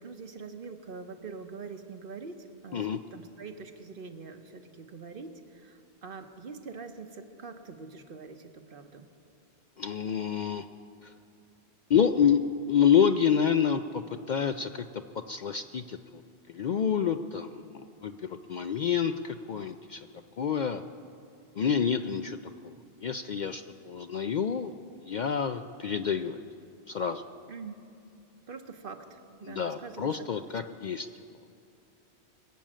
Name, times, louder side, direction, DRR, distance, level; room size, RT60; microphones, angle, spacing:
voice 1, 0.0-9.0 21.6-21.9 27.5-27.7 28.5-30.4, right 4 dB, 55° right, 7 dB, 1.1 m, -44 dB
voice 2, 9.8-10.6 11.9-12.4 12.7-14.8 15.3-16.2 16.5-17.7 18.0-20.0 20.4-20.8 21.6-22.4 23.0-24.7 25.1-26.4 26.9-27.2 29.4-31.1, left 7 dB, 55° left, 8 dB, 0.5 m, -28 dB
22.0 x 8.8 x 7.4 m, 2.6 s
omnidirectional pair, 1.1 m